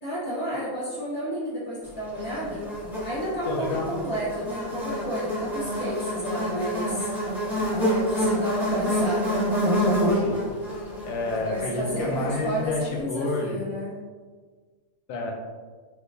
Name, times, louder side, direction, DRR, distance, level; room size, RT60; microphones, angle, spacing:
voice 1, 0.0-2.7 3.0-7.1 7.8-9.4 11.5-14.0, equal, 25° left, -11 dB, 1.2 m, -31 dB
Buzz, 2.2-12.6, equal, ahead, 0.6 m, -27 dB
voice 2, 3.5-3.9 10.1-10.4 11.0-13.6 15.1-15.3, left 2 dB, 90° left, 0 dB, 1.2 m, -29 dB
4.5 x 2.0 x 2.6 m, 1.5 s
omnidirectional pair, 1.6 m